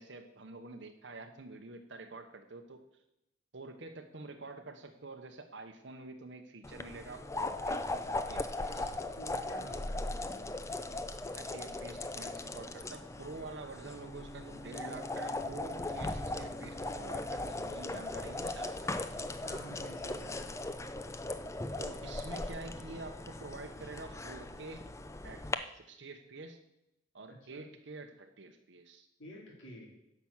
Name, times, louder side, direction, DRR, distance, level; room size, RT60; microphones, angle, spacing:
voice 1, 0.0-3.0 3.5-9.0 11.3-19.2 21.8-24.9 25.2-26.6 27.1-29.1, right 3 dB, 60° right, 4 dB, 0.8 m, -48 dB
sound 1, 6.6-25.5, left 2 dB, 15° left, 0.5 m, -39 dB
voice 2, 8.7-10.6 13.6-13.7 19.4-20.5 27.5-27.6 29.2-30.0, equal, 75° left, -3 dB, 3.8 m, -50 dB
Bowed string instrument, 13.8-18.0, equal, 55° left, 2.7 m, -50 dB
10.5 x 6.0 x 7.2 m, 0.84 s
head